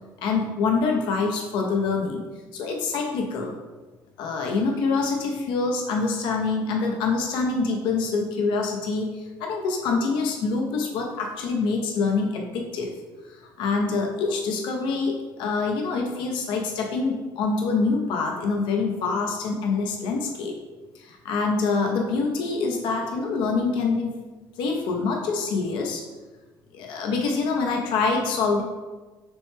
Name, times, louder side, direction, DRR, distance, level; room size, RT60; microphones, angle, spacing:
voice 1, 0.2-2.2 2.5-3.6 4.2-12.9 13.3-20.5 21.0-24.1 24.6-26.0 26.7-28.6, left 4 dB, 80° left, 1 dB, 0.6 m, -25 dB
6.1 x 2.1 x 3.2 m, 1.2 s
cardioid pair, 135°, 8 cm